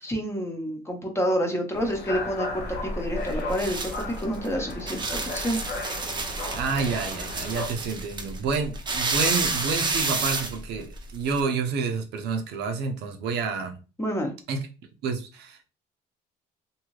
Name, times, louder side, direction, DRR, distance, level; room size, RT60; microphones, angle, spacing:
voice 1, 0.0-2.6 2.9-5.1 5.3-5.6 14.0-14.3, equal, 15° left, 0.8 m, -28 dB
sound 1, 1.7-7.7, left 2 dB, 85° left, 0.7 m, -35 dB
sound 2, 2.6-11.4, right 3 dB, 25° right, 0.6 m, -30 dB
voice 2, 6.5-13.8 14.5-14.6 15.0-15.7, right 5 dB, 80° right, 0.6 m, -29 dB
2.6 x 2.4 x 3.1 m
cardioid pair, 110°, 17 cm